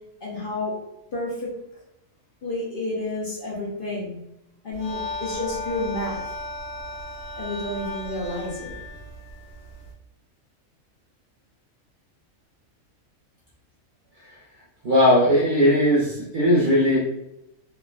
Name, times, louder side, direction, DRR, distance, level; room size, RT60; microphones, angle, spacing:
voice 1, 0.2-0.8 1.1-1.5 2.4-4.2 4.6-6.2 7.4-8.8, left 2 dB, 55° left, -5 dB, 0.6 m, -30 dB
sound 1, 4.7-9.9, left 2 dB, 80° left, 1.1 m, -35 dB
voice 2, 14.8-17.0, equal, 60° right, -6 dB, 0.5 m, -18 dB
3.2 x 2.2 x 2.3 m, 0.85 s
omnidirectional pair, 1.4 m